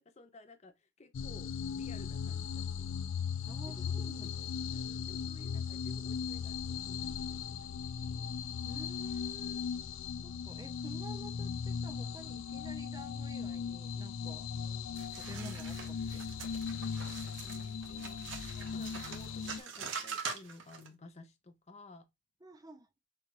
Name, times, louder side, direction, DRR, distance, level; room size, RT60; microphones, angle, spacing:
voice 1, 0.0-3.0 3.6-8.3 15.9-16.1 16.6-22.1, left 2 dB, 35° left, 0.7 m, -56 dB
sound 1, 1.1-19.6, left 6 dB, 85° left, 0.4 m, -38 dB
voice 2, 3.5-4.5 8.6-9.6 10.2-14.5 15.1-16.2 22.4-22.9, right 1 dB, 20° right, 0.6 m, -51 dB
sound 2, 15.0-20.9, right 5 dB, 75° right, 1.2 m, -44 dB
6.6 x 2.5 x 3.0 m
head